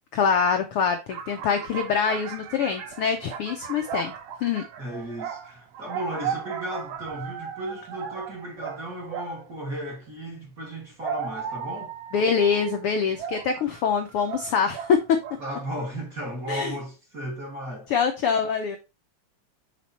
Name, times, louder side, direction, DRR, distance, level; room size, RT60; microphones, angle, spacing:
voice 1, 0.1-4.1 4.4-4.6 12.1-15.0 16.5-16.7 17.9-18.8, left 6 dB, 75° left, 1.3 m, -24 dB
sound 1, 1.1-9.5 10.6-15.4 15.7-16.1, right 8 dB, 70° right, 1.6 m, -36 dB
voice 2, 4.8-11.9 15.4-17.9, right 1 dB, 35° right, 1.6 m, -35 dB
6.8 x 4.2 x 4.2 m
omnidirectional pair, 3.4 m